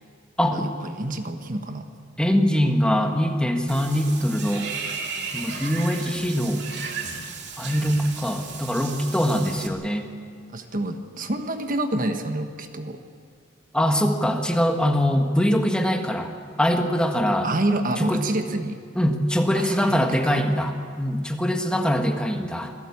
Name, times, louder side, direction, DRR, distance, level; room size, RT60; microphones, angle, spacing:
voice 1, 0.4-0.7 2.2-4.7 5.3-6.6 7.6-10.1 13.7-16.3 16.6-17.5 18.0-18.2 19.0-22.7, equal, 5° left, 4 dB, 1.6 m, -23 dB
voice 2, 0.9-1.9 10.5-13.0 17.4-18.8 19.5-20.5, right 1 dB, 45° right, 6 dB, 1.3 m, -28 dB
Water / Bathtub (filling or washing), 3.7-9.7, right 5 dB, 60° right, 2.7 m, -35 dB
26.5 x 17.0 x 8.6 m, 2.1 s
head